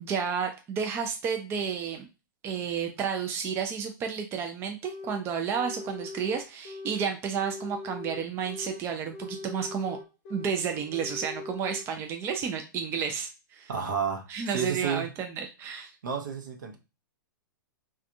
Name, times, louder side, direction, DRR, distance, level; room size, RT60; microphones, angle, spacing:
voice 1, 0.0-2.1 2.4-10.0 10.3-13.7 14.3-15.9, right 7 dB, 20° right, 4 dB, 0.4 m, -31 dB
sound 1, 4.9-5.2 5.5-7.0 7.3-8.8 9.1-10.6 10.9-11.9, left 3 dB, 40° left, 0.9 m, -41 dB
voice 2, 10.7-11.1 13.7-15.1 16.0-16.8, right 6 dB, 65° right, 4 dB, 0.7 m, -32 dB
3.3 x 2.3 x 2.6 m, 0.29 s
figure-of-eight pair, 105°, 11 cm